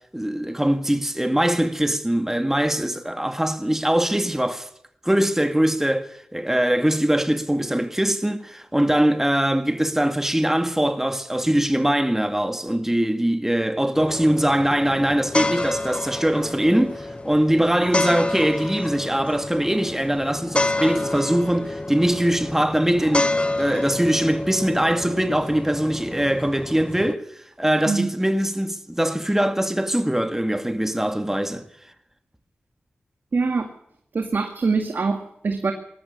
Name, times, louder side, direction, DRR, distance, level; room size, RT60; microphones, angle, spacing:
voice 1, 0.1-4.7 5.0-31.7, right 1 dB, 10° right, 1.8 m, -22 dB
sound 1, 13.9-27.1, left 2 dB, 30° left, 1.2 m, -28 dB
voice 2, 33.3-33.7 34.1-35.7, right 4 dB, 65° right, 2.0 m, -23 dB
19.5 x 13.5 x 9.7 m
cardioid pair, 50°, 4 cm